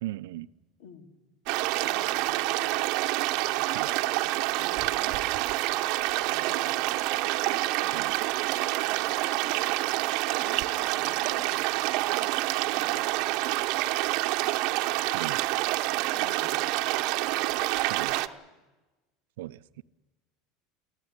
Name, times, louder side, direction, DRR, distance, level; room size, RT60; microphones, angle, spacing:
voice 1, 0.0-0.5 3.7-3.9 7.9-8.1 15.1-15.4 17.9-18.2 19.4-19.8, right 16 dB, 90° right, 15 dB, 0.7 m, -38 dB
voice 2, 0.8-1.1 1.8-2.8 3.4-3.9 4.5-5.4 6.2-9.7 10.4-12.9 16.1-16.7 18.0-18.5, left 6 dB, 75° left, 7 dB, 3.1 m, -52 dB
sound 1, 1.5-18.3, right 17 dB, 55° right, 0.9 m, -27 dB
23.0 x 16.0 x 9.8 m, 1.2 s
supercardioid pair, 150°, 0 cm